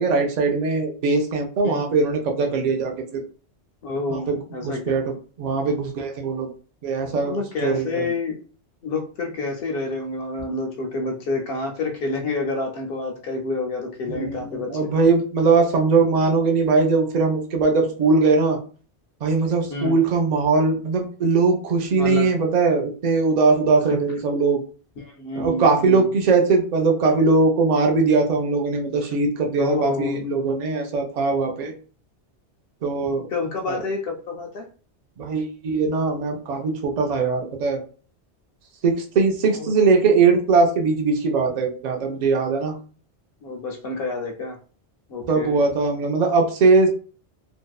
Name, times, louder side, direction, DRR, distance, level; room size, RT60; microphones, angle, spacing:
voice 1, 0.0-3.2 4.1-6.5 6.8-8.1 14.1-18.6 19.2-24.6 25.4-31.7 32.8-33.3 33.7-33.8 35.2-37.8 38.8-42.7 45.3-46.9, right 4 dB, 50° right, 2 dB, 0.5 m, -20 dB
voice 2, 1.6-2.0 3.8-5.0 7.2-8.4 8.8-14.9 19.7-20.0 22.0-22.3 23.9-24.0 25.0-26.1 29.6-30.2 33.3-34.6 39.4-39.7 43.4-44.6 45.1-45.6, left 3 dB, 65° left, 2 dB, 0.7 m, -28 dB
2.6 x 2.1 x 2.3 m, 0.40 s
omnidirectional pair, 1.2 m